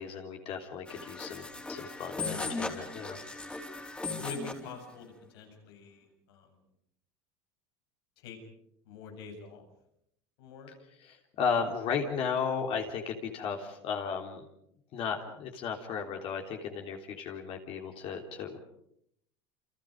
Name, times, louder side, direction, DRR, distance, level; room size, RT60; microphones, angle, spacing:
voice 1, 0.0-3.2 11.0-14.4 14.9-18.6, left 6 dB, 50° left, 2 dB, 3.4 m, -35 dB
sound 1, 0.9-4.7, left 3 dB, 10° left, 3.9 m, -38 dB
voice 2, 4.2-6.5 8.2-8.4 8.9-9.6 10.4-10.7, left 4 dB, 85° left, 4 dB, 7.4 m, -45 dB
29.0 x 26.0 x 5.2 m, 0.74 s
supercardioid pair, 130°, 13 cm